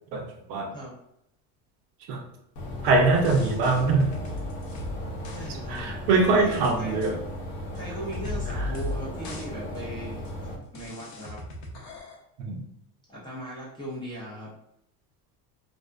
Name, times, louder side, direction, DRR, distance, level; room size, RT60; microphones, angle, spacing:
voice 1, 0.1-0.7 2.0-2.2 2.8-4.1 5.7-7.2 8.5-8.7 12.4-12.6, right 3 dB, 60° right, 3 dB, 0.6 m, -23 dB
sound 1, 2.6-10.6, left 1 dB, 90° left, 0.9 m, -36 dB
sound 2, 3.2-5.5 5.8-5.9 6.3-6.7 7.0-7.1 7.8-7.9 8.1-9.0 9.2-9.5 9.8-9.9 10.3-10.4 10.8-12.2, left 2 dB, 45° left, 0.7 m, -37 dB
voice 2, 5.3-6.1 6.4-7.0 7.8-10.2 10.7-11.4 13.1-14.5, right 1 dB, 10° left, -8 dB, 0.3 m, -38 dB
2.5 x 2.3 x 2.2 m, 0.78 s
supercardioid pair, 115°, 47 cm